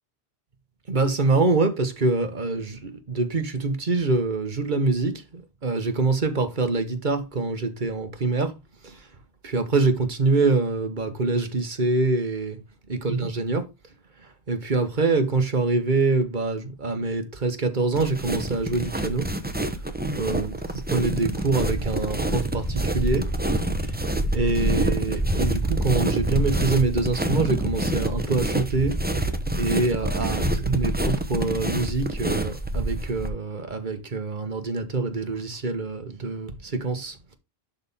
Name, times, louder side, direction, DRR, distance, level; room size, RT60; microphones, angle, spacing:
voice 1, 0.9-8.5 8.8-9.1 9.4-12.6 12.9-13.6 14.2-19.3 20.1-23.3 23.9-24.0 24.3-29.0 29.6-37.4, right 3 dB, 50° right, 1.4 m, -25 dB
sound 1, 17.9-33.3, right 1 dB, 10° right, 0.8 m, -26 dB
11.5 x 4.3 x 3.6 m
omnidirectional pair, 1.0 m